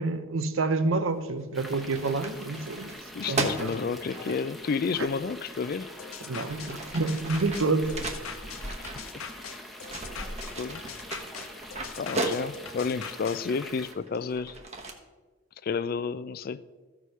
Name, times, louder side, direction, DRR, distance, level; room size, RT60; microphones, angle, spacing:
voice 1, 0.0-2.9 3.3-3.7 5.0-5.1 6.3-7.9, right 3 dB, 80° right, 11 dB, 0.7 m, -28 dB
sound 1, 1.2-1.4 1.7-4.4 5.5-5.6 6.2-9.5 9.8-12.8 13.5-14.9, right 2 dB, 30° right, 1.0 m, -36 dB
sound 2, 1.5-13.9, equal, ahead, 0.9 m, -44 dB
voice 2, 3.1-5.9 8.7-8.8 10.6-10.8 11.9-14.6 15.6-16.6, left 5 dB, 45° left, 16 dB, 0.4 m, -31 dB
sound 3, 6.0-13.4, left 7 dB, 90° left, 0.8 m, -42 dB
14.0 x 4.8 x 5.6 m, 1.3 s
head